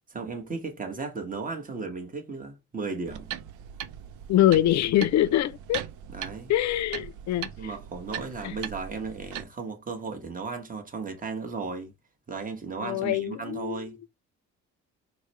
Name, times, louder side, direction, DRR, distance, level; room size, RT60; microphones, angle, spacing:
voice 1, 0.1-3.3 6.1-6.5 7.6-11.9 12.3-14.0, right 4 dB, 30° right, 1.3 m, -35 dB
sound 1, 3.0-9.4, right 10 dB, 80° right, 0.5 m, -39 dB
voice 2, 4.3-5.8 6.5-7.7 8.4-8.6 12.8-13.9, left 13 dB, 65° left, 0.5 m, -24 dB
4.6 x 2.3 x 3.1 m
cardioid pair, 90°, 30 cm